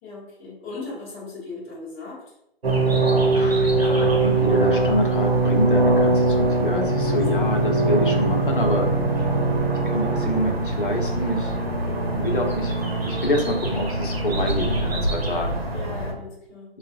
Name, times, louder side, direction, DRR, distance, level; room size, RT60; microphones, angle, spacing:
voice 1, 0.0-2.3 3.7-3.9 7.1-7.5 11.8-12.2 15.7-16.8, left 3 dB, 10° left, -6 dB, 0.8 m, -38 dB
sound 1, 2.6-16.1, right 2 dB, 75° right, 1.0 m, -22 dB
voice 2, 3.3-8.9 9.8-11.6 12.1-12.7 13.0-15.6 16.7-16.8, equal, 55° left, 2 dB, 0.9 m, -26 dB
Bowed string instrument, 6.7-10.9, right 5 dB, 50° right, 0.8 m, -28 dB
3.8 x 2.4 x 2.6 m, 0.80 s
figure-of-eight pair, 140°, 31 cm